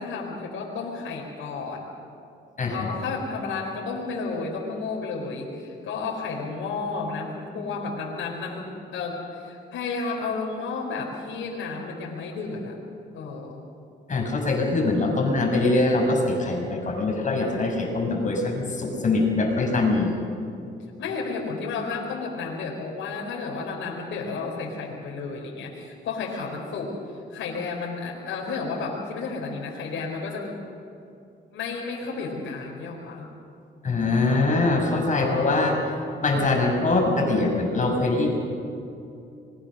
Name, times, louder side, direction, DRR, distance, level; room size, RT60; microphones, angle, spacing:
voice 1, 0.0-1.9 2.7-12.8 13.1-13.6 21.0-30.6 31.5-33.3 35.1-35.8, left 4 dB, 80° left, -2 dB, 4.5 m, -32 dB
voice 2, 2.6-2.9 14.1-20.1 33.8-35.8 36.2-38.3, left 2 dB, 40° left, 1 dB, 6.8 m, -23 dB
26.0 x 22.0 x 6.6 m, 2.6 s
cardioid pair, 90°, 20 cm